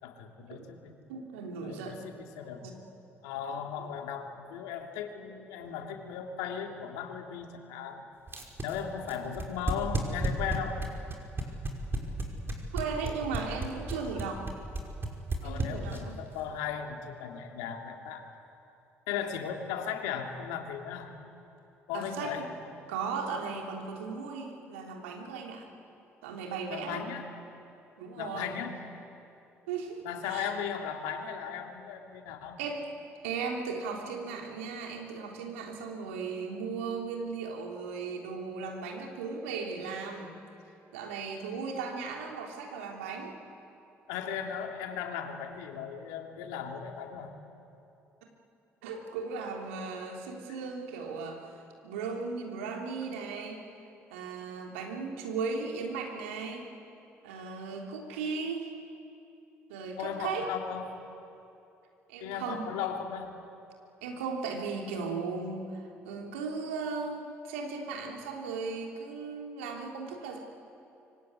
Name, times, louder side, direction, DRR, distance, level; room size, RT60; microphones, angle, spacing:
voice 1, 0.0-1.0 1.6-2.7 3.2-8.0 8.6-10.9 15.4-18.2 19.1-21.1 21.9-22.5 26.7-27.3 28.2-28.8 30.0-32.6 44.1-47.3 60.0-61.0 62.2-63.4, left 7 dB, 75° left, 3 dB, 2.7 m, -37 dB
voice 2, 1.1-2.0 2.6-2.7 3.8-3.9 12.7-14.4 15.4-16.2 21.9-22.5 22.9-25.7 26.2-27.0 28.0-28.5 29.7-30.5 32.6-32.9 33.2-40.4 40.9-43.4 48.8-53.6 54.1-56.7 57.2-58.7 59.7-60.5 62.1-62.7 64.0-70.4, right 5 dB, 80° right, 1 dB, 3.4 m, -37 dB
sound 1, 8.3-16.2, right 2 dB, 35° right, 5.6 m, -32 dB
25.5 x 23.5 x 9.6 m, 2.8 s
hypercardioid pair, 50°, 7 cm